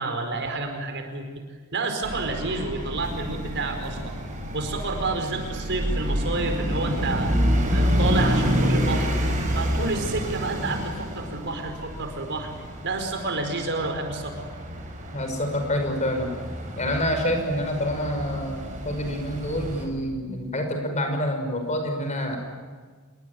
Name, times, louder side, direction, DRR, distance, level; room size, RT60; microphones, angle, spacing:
voice 1, 0.0-1.4 1.7-4.1 4.5-7.3 7.7-9.1 9.5-12.5 12.8-14.5, right 3 dB, 55° right, 5 dB, 4.7 m, -29 dB
sound 1, 2.0-19.9, equal, 35° right, 5.7 m, -28 dB
voice 2, 15.1-16.3 16.8-22.4, equal, 35° left, 4 dB, 5.5 m, -27 dB
27.5 x 23.0 x 9.4 m, 1.5 s
head